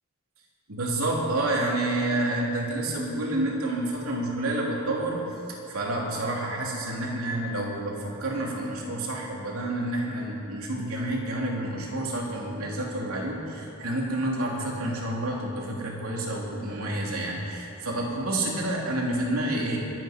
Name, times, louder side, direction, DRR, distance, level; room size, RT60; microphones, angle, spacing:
voice 1, 0.7-5.2 5.5-19.8, right 1 dB, 85° right, -2 dB, 3.0 m, -29 dB
23.0 x 9.2 x 5.2 m, 2.8 s
head